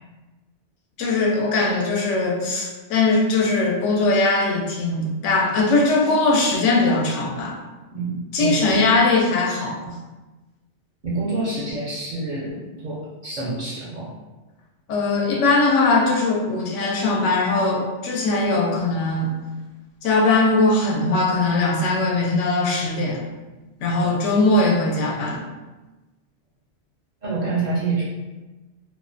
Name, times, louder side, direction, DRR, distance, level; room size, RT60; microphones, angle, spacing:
voice 1, 1.0-7.6 8.3-9.8 14.9-19.3 20.0-23.2 23.8-25.4, left 3 dB, 85° left, -1 dB, 0.9 m, -20 dB
voice 2, 7.9-8.9 9.9-10.0 11.0-14.1 24.0-24.2 27.2-28.0, right 3 dB, 60° right, -6 dB, 0.5 m, -27 dB
2.4 x 2.1 x 2.5 m, 1.2 s
omnidirectional pair, 1.2 m